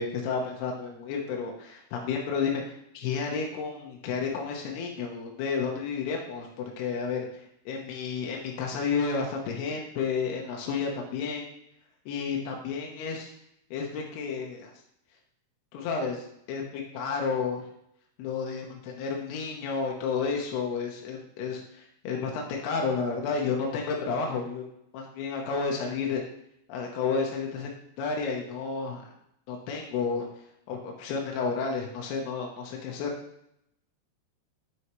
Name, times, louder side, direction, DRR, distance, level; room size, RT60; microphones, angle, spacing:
voice 1, 0.0-2.6 2.9-6.5 6.8-7.3 7.7-11.4 12.1-13.3 13.7-14.7 15.7-17.6 18.2-24.6 24.9-26.2 26.7-27.7 28.0-29.0 29.5-30.3 30.7-33.1, left 5 dB, 75° left, 0 dB, 2.4 m, -31 dB
8.5 x 6.3 x 3.1 m, 0.77 s
omnidirectional pair, 5.8 m